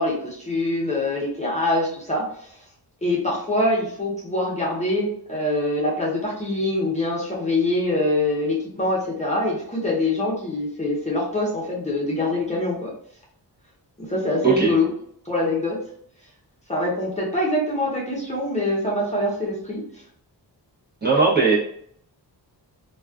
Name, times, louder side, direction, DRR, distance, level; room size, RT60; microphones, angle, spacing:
voice 1, 0.0-2.5 3.0-12.9 14.0-14.8 15.2-15.8 16.7-19.8, left 1 dB, 15° left, -6 dB, 0.7 m, -24 dB
voice 2, 14.4-14.7 21.0-21.6, right 4 dB, 25° right, -6 dB, 0.8 m, -18 dB
2.3 x 2.3 x 2.3 m, 0.64 s
wide cardioid pair, 85°, 42 cm